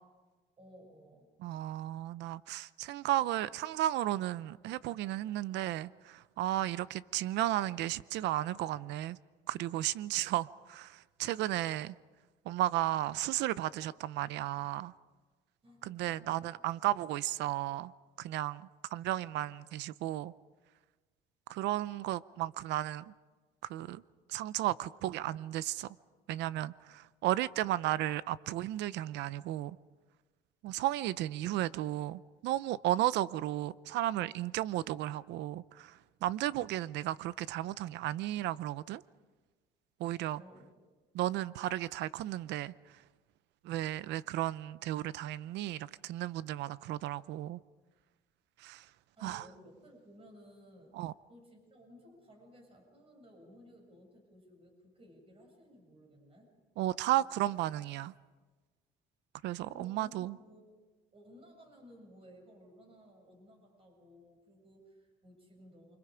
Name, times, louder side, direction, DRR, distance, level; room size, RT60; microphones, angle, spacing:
voice 1, 0.6-1.3 15.6-16.5 40.4-40.7 49.2-50.9 51.3-56.5 59.7-60.8 61.1-66.0, equal, 30° right, 7.4 m, -57 dB
voice 2, 1.4-9.2 9.5-11.9 12.4-14.9 15.8-17.9 18.2-20.3 21.5-23.1 23.6-24.0 24.3-26.0 26.3-29.8 30.6-39.0 40.0-40.4 41.1-43.0 43.6-47.6 48.6-48.9 49.2-49.4 50.9-51.1 56.8-58.1 59.4-60.4, right 14 dB, 80° right, 0.7 m, -34 dB
28.5 x 25.5 x 5.1 m
cardioid pair, 115°, 18 cm